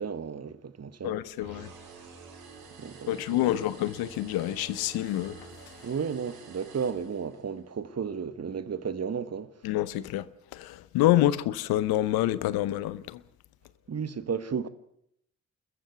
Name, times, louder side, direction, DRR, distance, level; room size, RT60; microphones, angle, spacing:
voice 1, 0.0-1.2 2.8-3.6 5.8-9.5 13.9-14.7, right 6 dB, 45° right, 1.5 m, -33 dB
voice 2, 1.0-1.7 3.1-5.5 9.6-10.3 10.5-13.2, left 14 dB, 80° left, 0.9 m, -27 dB
sound 1, 1.4-7.6, right 4 dB, 80° right, 4.6 m, -49 dB
26.5 x 14.5 x 8.1 m
hypercardioid pair, 45°, 36 cm